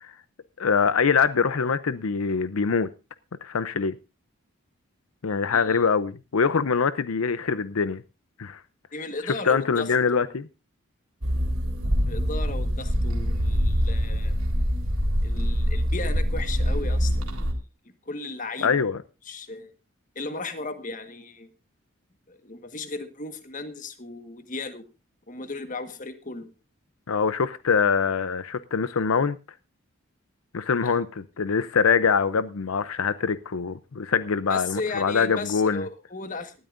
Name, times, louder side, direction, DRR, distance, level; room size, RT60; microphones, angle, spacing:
voice 1, 0.6-2.9 3.4-3.9 5.2-8.0 8.4-8.6 9.4-10.5 18.6-19.0 27.1-29.4 30.5-35.8, left 5 dB, 85° left, 0.6 m, -24 dB
voice 2, 5.5-5.8 8.9-10.3 12.1-14.3 15.2-17.3 18.0-18.9 19.2-19.7 20.1-21.5 22.3-24.8 25.3-26.5 30.8-31.0 34.5-36.5, left 3 dB, 40° left, 1.5 m, -35 dB
sound 1, 11.2-17.5, equal, 90° right, 3.5 m, -24 dB
19.0 x 12.5 x 2.6 m
head